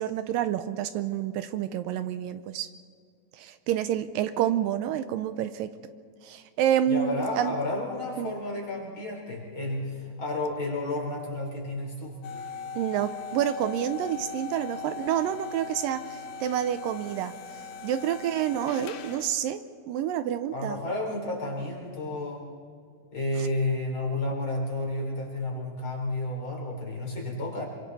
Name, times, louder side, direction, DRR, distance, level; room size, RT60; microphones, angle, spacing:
voice 1, 0.0-2.7 3.3-5.7 6.2-7.5 8.2-8.3 12.8-17.4 17.8-19.6 19.9-20.8, right 10 dB, 80° right, 11 dB, 2.3 m, -28 dB
voice 2, 6.9-12.2 20.5-22.4 23.1-27.7, left 2 dB, 35° left, -1 dB, 4.5 m, -31 dB
sound 1, 12.2-19.5, left 6 dB, 75° left, 2.8 m, -40 dB
27.5 x 24.5 x 4.1 m, 2.2 s
omnidirectional pair, 4.1 m